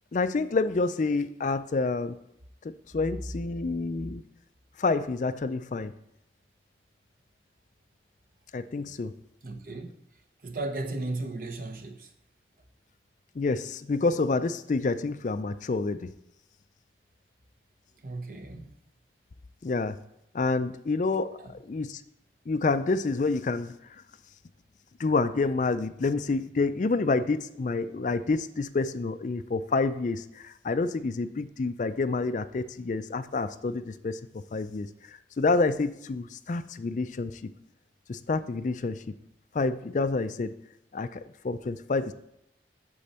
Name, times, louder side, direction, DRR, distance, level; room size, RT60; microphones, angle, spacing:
voice 1, 0.1-2.2 2.6-4.2 4.8-5.9 8.5-9.1 13.4-16.1 19.6-20.0 20.3-22.0 22.5-23.8 25.0-37.5 38.1-39.1 39.5-40.5 40.9-42.1, left 3 dB, 45° left, 12 dB, 0.4 m, -28 dB
voice 2, 9.4-9.9 10.4-12.1 18.0-18.7 21.4-21.5, right 2 dB, 50° right, 6 dB, 0.9 m, -35 dB
8.4 x 7.0 x 4.3 m, 0.79 s
head